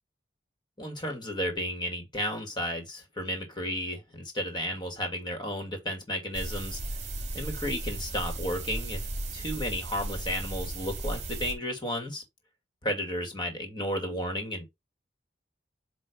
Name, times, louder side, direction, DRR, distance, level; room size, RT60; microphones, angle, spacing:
voice 1, 0.8-6.8 7.3-12.2 12.8-14.8, equal, 25° left, 2.2 m, -33 dB
sound 1, 6.3-11.5, right 2 dB, 35° right, 1.9 m, -35 dB
7.7 x 2.9 x 5.3 m
head